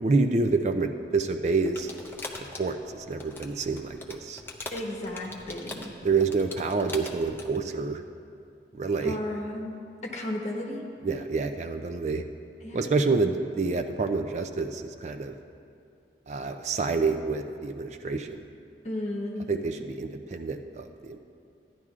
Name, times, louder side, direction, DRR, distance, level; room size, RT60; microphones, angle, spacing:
voice 1, 0.0-1.9 2.6-4.4 6.0-8.0 8.7-9.2 11.0-12.2 12.7-15.3 16.3-18.4 19.5-21.2, right 4 dB, 40° right, 7 dB, 0.4 m, -28 dB
sound 1, 1.7-7.6, left 2 dB, 10° left, 0.6 m, -42 dB
voice 2, 4.7-5.9 9.0-10.8 11.1-11.2 12.6-12.9 18.8-19.5, left 1 dB, 40° left, 0 dB, 1.1 m, -34 dB
15.0 x 10.5 x 2.4 m, 2.5 s
head